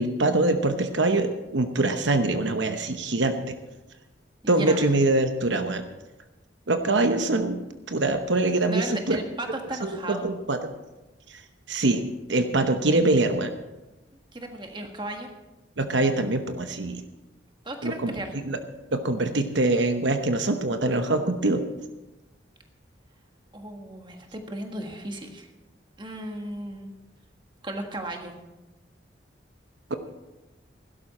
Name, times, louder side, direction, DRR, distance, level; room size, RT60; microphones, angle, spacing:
voice 1, 0.0-3.6 4.5-5.8 6.7-9.2 9.8-10.6 11.3-11.4 11.7-12.0 12.3-13.5 15.8-17.0 17.8-18.6 18.9-21.6 29.9-30.0, right 2 dB, 75° right, 7 dB, 0.9 m, -24 dB
voice 2, 4.4-4.9 8.7-10.3 14.3-15.3 17.6-18.3 23.5-25.5 26.0-26.9 27.6-28.3, right 1 dB, 25° right, 3 dB, 1.5 m, -35 dB
16.5 x 12.0 x 4.3 m, 1.0 s
head